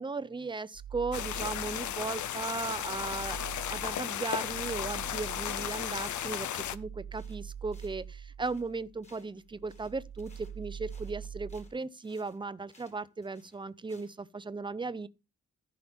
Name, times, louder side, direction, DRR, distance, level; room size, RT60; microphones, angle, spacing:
voice 1, 0.0-3.4 3.7-15.1, right 3 dB, 15° right, 0.5 m, -37 dB
sound 1, 0.7-2.2 2.6-9.1 9.4-11.7, right 8 dB, 70° right, 1.3 m, -45 dB
sound 2, 1.1-6.8, left 10 dB, 65° left, 0.5 m, -35 dB
sound 3, 6.8-6.9 7.1-9.4 9.7-14.3, left 2 dB, 20° left, 1.6 m, -63 dB
14.5 x 5.7 x 3.5 m
wide cardioid pair, 145°, 32 cm